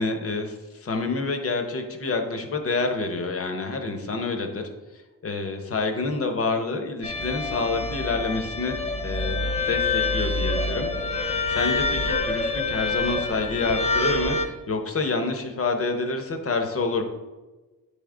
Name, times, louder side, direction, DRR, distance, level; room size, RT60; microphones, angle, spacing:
voice 1, 0.0-4.6 5.2-8.8 9.0-9.4 9.7-10.9 11.5-17.0, left 3 dB, 40° left, 5 dB, 0.8 m, -27 dB
sound 1, 7.0-14.5, left 3 dB, 20° left, 0.5 m, -26 dB
9.5 x 3.5 x 3.7 m, 1.2 s
wide cardioid pair, 170°, 35 cm